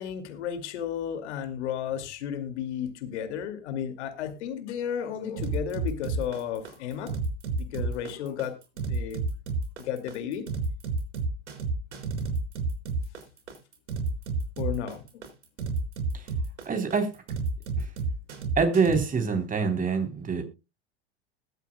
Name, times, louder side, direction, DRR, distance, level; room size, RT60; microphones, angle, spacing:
voice 1, 0.0-7.1 7.6-8.6 8.9-9.2 9.8-10.5 14.6-15.2, left 9 dB, 75° left, 8 dB, 2.4 m, -33 dB
sound 1, 5.4-19.0, right 3 dB, 90° right, 4.2 m, -30 dB
voice 2, 16.7-17.1 18.6-20.4, right 5 dB, 25° right, 5 dB, 3.5 m, -25 dB
21.0 x 8.3 x 2.2 m, 0.26 s
hypercardioid pair, 100°, 34 cm